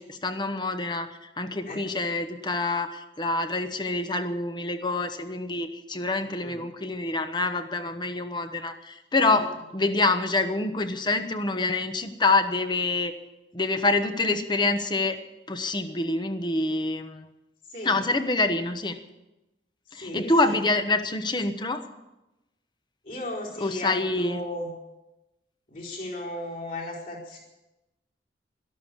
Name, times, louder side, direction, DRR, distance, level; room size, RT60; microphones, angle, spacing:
voice 1, 0.0-9.5 9.7-13.1 13.5-15.2 15.5-17.3 17.8-19.0 19.9-21.8 23.6-24.4, left 2 dB, 25° left, 8 dB, 1.1 m, -26 dB
voice 2, 17.7-18.0 20.0-20.6 23.0-24.7 25.7-27.4, left 1 dB, 50° left, -4 dB, 4.4 m, -36 dB
13.0 x 12.5 x 8.4 m, 1.0 s
head